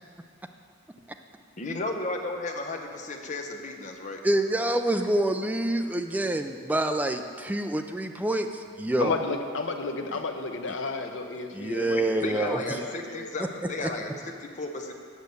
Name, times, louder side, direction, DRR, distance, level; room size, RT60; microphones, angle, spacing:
voice 1, 1.6-4.2 12.0-14.9, left 2 dB, 40° left, 3 dB, 0.8 m, -34 dB
voice 2, 4.2-9.1 11.5-12.6 13.8-13.9, right 1 dB, 10° right, 6 dB, 0.4 m, -27 dB
voice 3, 9.0-12.0 12.3-13.3, left 3 dB, 70° left, 5 dB, 0.8 m, -32 dB
8.3 x 6.5 x 6.9 m, 2.2 s
head